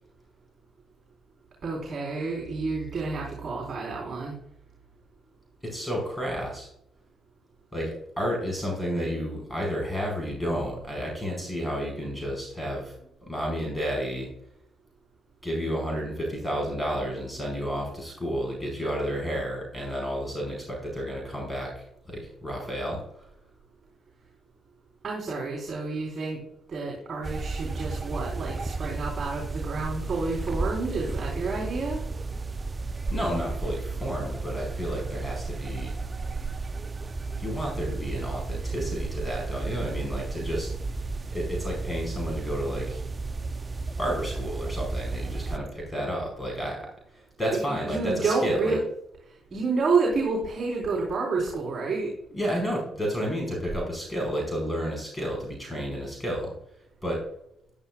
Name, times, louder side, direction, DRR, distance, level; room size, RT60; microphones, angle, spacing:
voice 1, 1.6-4.3 25.0-26.4 26.7-32.0 47.5-48.8 49.5-52.1, right 4 dB, 45° right, -3 dB, 4.1 m, -29 dB
voice 2, 5.6-6.7 7.7-12.9 13.3-14.3 15.4-23.3 33.1-35.9 37.4-40.7 41.3-43.0 44.0-48.8 52.3-56.5 57.0-57.2, equal, 10° left, -1 dB, 4.9 m, -31 dB
sound 1, 27.2-45.6, right 3 dB, 25° right, 0.6 m, -33 dB
13.5 x 11.0 x 2.4 m, 0.74 s
cardioid pair, 90°, 0 cm